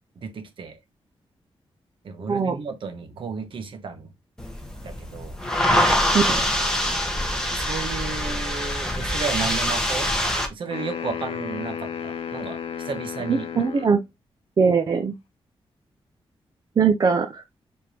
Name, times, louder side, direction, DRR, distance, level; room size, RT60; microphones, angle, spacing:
voice 1, 0.2-0.8 2.0-4.1 4.8-5.4 7.5-10.1 10.5-12.6 12.8-13.6, right 5 dB, 60° right, 1.2 m, -33 dB
sound 1, 4.4-10.5, equal, 5° left, 1.1 m, -24 dB
sound 2, 10.7-14.0, left 7 dB, 85° left, 0.7 m, -33 dB
voice 2, 13.3-14.0 14.6-15.1 16.8-17.4, right 5 dB, 40° right, 0.5 m, -21 dB
4.9 x 3.4 x 2.8 m
wide cardioid pair, 145°, 10 cm